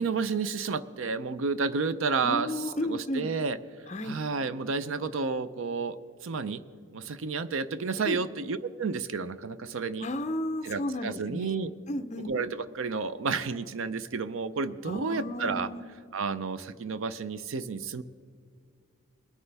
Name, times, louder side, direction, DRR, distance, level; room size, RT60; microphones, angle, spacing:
voice 1, 0.0-3.6 4.0-6.0 6.2-6.6 6.9-10.1 10.6-11.7 12.2-15.7 16.1-18.0, right 4 dB, 65° right, 14 dB, 0.5 m, -31 dB
voice 2, 2.2-3.3 3.9-4.2 8.1-8.2 10.0-12.3 14.9-15.8, left 1 dB, 30° left, 9 dB, 0.6 m, -33 dB
21.0 x 9.6 x 3.4 m, 2.2 s
head